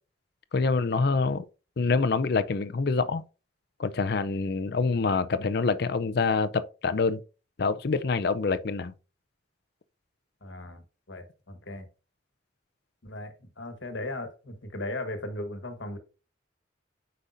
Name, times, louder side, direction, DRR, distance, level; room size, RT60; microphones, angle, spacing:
voice 1, 0.5-1.4 1.8-3.2 3.8-7.2 7.6-8.9, left 4 dB, 55° left, 0.5 m, -26 dB
voice 2, 10.4-11.9 13.0-16.0, left 2 dB, 75° left, 1.3 m, -37 dB
8.2 x 5.3 x 2.6 m
head